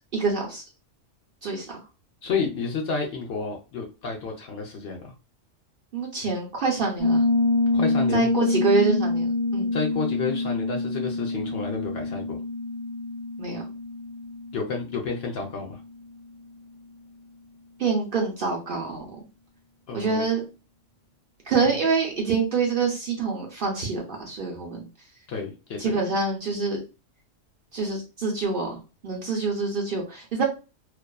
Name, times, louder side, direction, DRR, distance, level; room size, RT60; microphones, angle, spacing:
voice 1, 0.1-0.6 1.4-1.8 5.9-7.2 8.1-9.7 13.4-13.6 17.8-19.1 19.9-20.4 21.5-24.9 25.8-26.8 27.7-30.4, right 4 dB, 55° right, -1 dB, 0.7 m, -26 dB
voice 2, 2.2-5.1 7.7-8.3 9.7-12.4 14.5-15.8 19.9-20.2 25.3-26.0, left 5 dB, 65° left, 1 dB, 0.7 m, -30 dB
Piano, 7.0-15.5, left 2 dB, 5° right, 0.8 m, -26 dB
2.4 x 2.3 x 2.2 m, 0.30 s
omnidirectional pair, 1.3 m